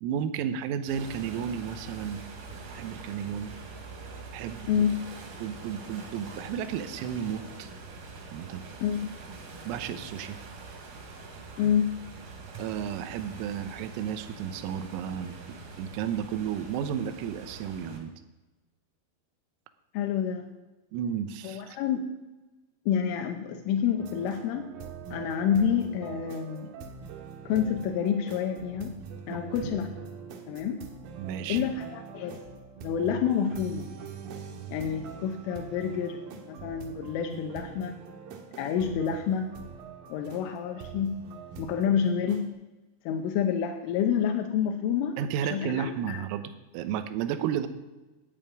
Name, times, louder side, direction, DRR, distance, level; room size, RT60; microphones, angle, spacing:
voice 1, 0.0-2.2 2.8-3.5 4.3-4.8 5.4-7.7 8.3-8.6 9.7-10.4 12.6-18.1 20.9-21.8 29.3-29.7 31.2-31.7 45.2-47.7, right 8 dB, 90° right, 10 dB, 3.6 m, -33 dB
sound 1, 0.9-18.0, right 3 dB, 55° right, 3.7 m, -44 dB
voice 2, 4.7-5.0 8.8-9.1 11.6-12.0 19.9-20.5 21.4-22.1 22.9-24.7 25.1-26.7 27.5-29.0 29.3-29.9 30.5-30.8 31.5-32.4 32.8-33.9 34.7-38.0 38.6-39.5 40.1-41.2 41.6-42.5 43.1-45.2 45.5-46.2, left 8 dB, 80° left, 4 dB, 3.3 m, -28 dB
sound 2, 24.0-42.5, right 6 dB, 70° right, 2.3 m, -43 dB
11.0 x 8.6 x 9.0 m, 1.1 s
omnidirectional pair, 6.0 m